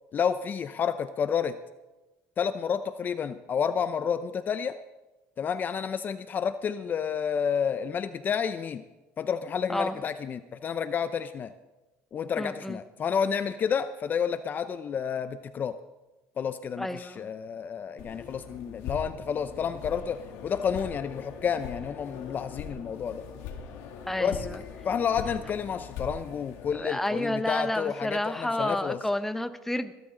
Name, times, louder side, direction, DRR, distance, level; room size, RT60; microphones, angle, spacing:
voice 1, 0.1-1.6 2.4-4.8 5.4-8.8 9.2-11.5 12.1-15.7 16.4-23.2 24.2-24.5 24.8-29.0, left 7 dB, 35° left, 11 dB, 0.6 m, -30 dB
voice 2, 9.7-10.0 12.4-12.8 16.8-17.2 24.1-24.6 26.7-29.9, left 1 dB, 5° left, 10 dB, 0.9 m, -30 dB
sound 1, 18.0-26.7, left 6 dB, 80° left, 2.4 m, -41 dB
21.0 x 13.0 x 3.8 m, 1.1 s
cardioid pair, 115°, 5 cm